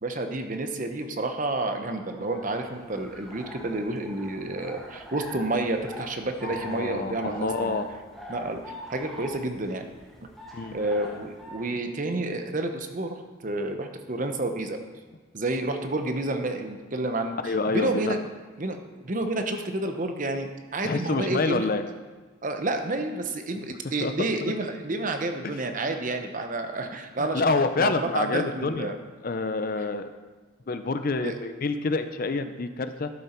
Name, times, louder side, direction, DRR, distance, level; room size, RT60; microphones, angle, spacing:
voice 1, 0.0-7.8 8.3-9.8 10.7-14.8 15.3-18.2 18.6-21.7 22.4-29.0 31.2-31.3, right 2 dB, 40° right, 6 dB, 0.8 m, -30 dB
sound 1, 2.0-11.8, equal, ahead, 1.4 m, -43 dB
voice 2, 6.4-7.9 10.5-10.8 17.4-18.2 20.8-21.8 24.0-24.5 25.4-25.7 27.2-28.9 29.2-30.1 30.7-33.1, left 3 dB, 45° left, 10 dB, 0.5 m, -27 dB
12.0 x 7.0 x 4.4 m, 1.3 s
head